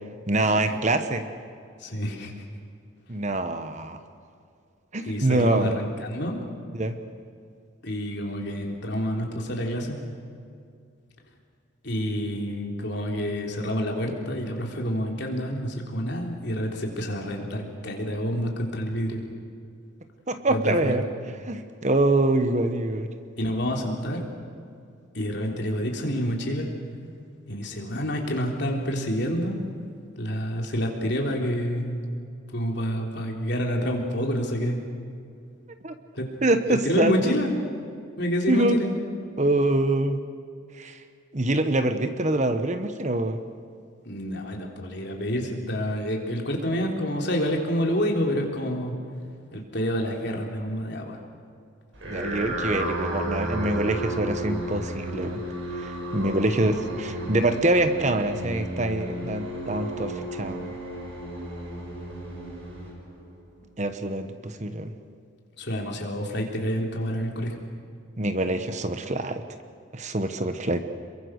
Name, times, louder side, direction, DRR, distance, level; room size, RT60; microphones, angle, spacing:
voice 1, 0.3-1.2 3.1-4.0 4.9-5.8 6.7-7.0 20.3-21.0 21.5-23.1 35.8-35.9 36.4-37.3 38.5-38.8 39.4-40.2 40.8-41.0 41.3-43.4 52.1-55.4 55.8-60.7 63.8-64.9 68.2-69.4 69.9-70.8, right 2 dB, 35° right, 8 dB, 1.2 m, -25 dB
voice 2, 1.8-2.3 5.1-6.4 7.8-10.0 11.8-19.2 20.5-21.0 23.4-24.3 25.2-26.7 27.5-29.6 30.2-32.0 32.5-34.8 36.1-36.3 36.8-37.6 38.2-38.9 44.1-48.9 49.5-51.2 65.6-67.6, equal, 55° left, 1 dB, 3.6 m, -28 dB
sound 1, 51.9-63.4, right 1 dB, 70° right, 6.9 m, -33 dB
28.0 x 22.5 x 6.5 m, 2.3 s
head